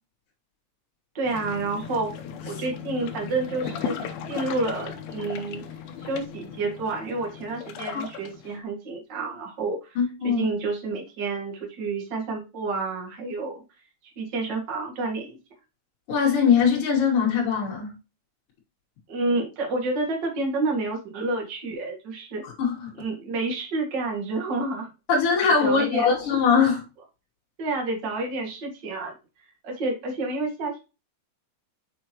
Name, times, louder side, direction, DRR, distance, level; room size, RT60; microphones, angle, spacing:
voice 1, 1.1-2.1 2.4-3.9 4.3-5.6 6.0-10.0 10.2-13.6 14.1-15.4 19.1-22.4 23.0-24.9 25.4-26.1 27.6-29.1 29.6-30.8, right 3 dB, 65° right, 1.1 m, -29 dB
sound 1, 1.3-8.6, left 7 dB, 75° left, 2.5 m, -37 dB
voice 2, 9.9-10.4 16.1-17.9 22.4-22.9 25.1-26.8, left 6 dB, 35° left, 2.7 m, -21 dB
6.7 x 6.3 x 2.9 m
omnidirectional pair, 5.3 m